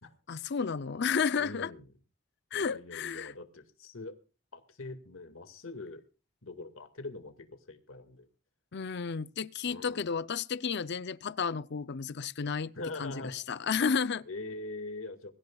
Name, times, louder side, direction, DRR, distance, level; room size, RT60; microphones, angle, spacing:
voice 1, 0.3-1.7 2.5-3.3 8.7-12.7 13.0-14.2, left 6 dB, 55° left, 0.6 m, -32 dB
voice 2, 1.4-1.9 2.5-4.2 4.5-6.0 6.4-8.3 9.7-10.1 12.7-13.4 14.3-15.3, left 2 dB, 80° left, 2.0 m, -43 dB
24.0 x 15.0 x 2.4 m
head